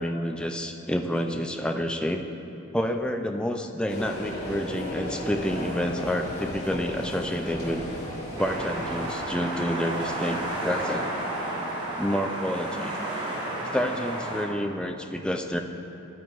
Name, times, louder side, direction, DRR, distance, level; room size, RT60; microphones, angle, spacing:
voice 1, 0.0-2.3 2.7-7.8 8.4-11.1 12.0-13.0 13.7-15.6, equal, 5° left, 4 dB, 0.3 m, -29 dB
sound 1, 3.9-9.2, equal, 35° left, 1.5 m, -35 dB
sound 2, 8.4-14.5, right 1 dB, 25° right, 1.1 m, -32 dB
11.0 x 9.1 x 2.4 m, 2.9 s
head